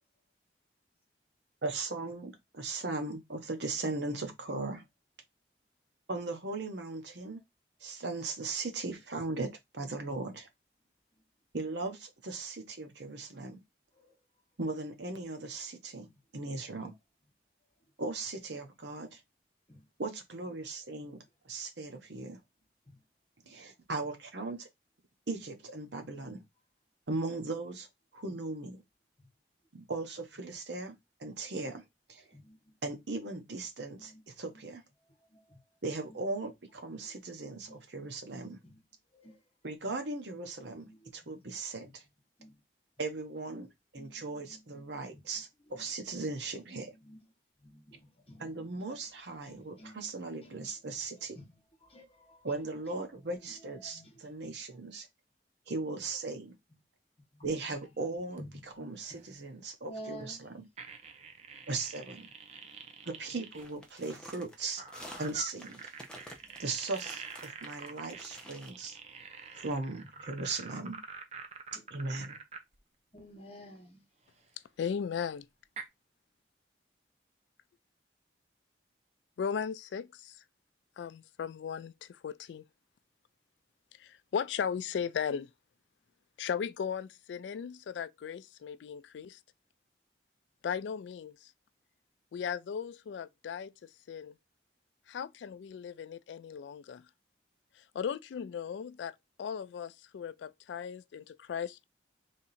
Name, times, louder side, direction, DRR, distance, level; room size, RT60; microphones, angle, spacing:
voice 1, 1.6-4.8 6.1-7.4 7.8-10.5 11.5-13.6 14.6-16.1 16.3-16.9 18.0-19.2 20.0-22.4 23.4-24.7 25.3-26.4 27.1-27.9 28.1-28.8 29.7-30.9 31.2-31.8 32.1-32.3 32.8-34.8 35.8-38.6 39.6-42.0 43.0-46.9 48.4-51.4 52.4-55.1 55.7-56.6 57.4-60.7 61.7-62.3 63.1-64.8 65.2-65.9 66.6-69.0 69.5-71.0 71.7-72.4, right 3 dB, 80° right, 1.0 m, -38 dB
voice 2, 44.5-44.8 47.1-47.2 47.6-48.0 48.3-48.5 49.4-49.9 51.3-51.4 51.9-52.4 53.9-54.1 58.4-58.5 58.8-59.2 59.8-60.4 73.1-74.0, equal, 35° left, 1.2 m, -49 dB
sound 1, 57.7-57.9 58.3-58.4 59.0-59.3 60.8-63.7 64.8-72.8 74.9-75.0 75.8-75.9, right 5 dB, 35° right, 0.7 m, -46 dB
sound 2, 63.6-68.7, equal, 5° left, 0.7 m, -50 dB
voice 3, 74.8-75.5 79.4-80.4 81.0-82.6 84.0-85.5 86.4-89.4 90.6-91.4 92.3-94.3 95.1-97.0 97.9-101.8, left 7 dB, 85° left, 0.3 m, -37 dB
3.5 x 2.8 x 4.1 m
head